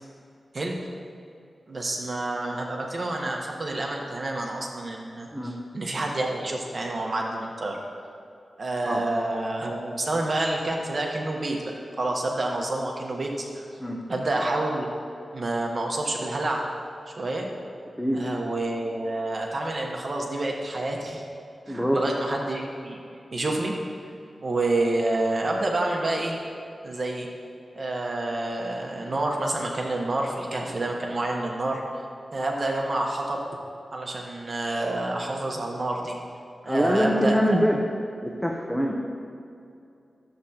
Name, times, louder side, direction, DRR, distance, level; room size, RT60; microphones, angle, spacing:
voice 1, 1.7-7.8 8.6-11.6 12.0-13.6 14.1-14.9 15.3-16.6 17.2-17.5 18.1-21.2 21.7-23.0 23.3-23.7 24.4-26.4 26.8-27.3 27.7-31.8 32.3-33.4 33.9-36.2 36.6-37.6, right 2 dB, 50° right, 0 dB, 1.1 m, -28 dB
voice 2, 21.7-22.0 36.7-37.8 38.2-38.9, equal, ahead, 0 dB, 0.7 m, -24 dB
13.0 x 7.7 x 2.9 m, 2.6 s
wide cardioid pair, 100°, 0 cm